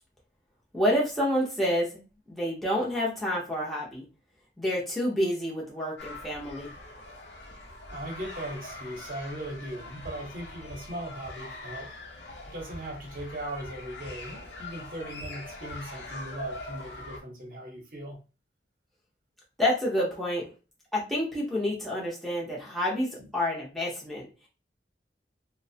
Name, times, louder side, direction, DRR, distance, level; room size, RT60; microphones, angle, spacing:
voice 1, 0.7-1.9 2.3-4.0 4.6-6.7 19.6-20.5 20.9-24.2, equal, ahead, -5 dB, 0.6 m, -28 dB
sound 1, 6.0-17.2, left 2 dB, 75° left, 0.7 m, -42 dB
voice 2, 7.9-11.9 12.5-18.2 23.2-23.3, right 1 dB, 50° right, 1 dB, 0.8 m, -39 dB
2.9 x 2.1 x 2.7 m, 0.32 s
head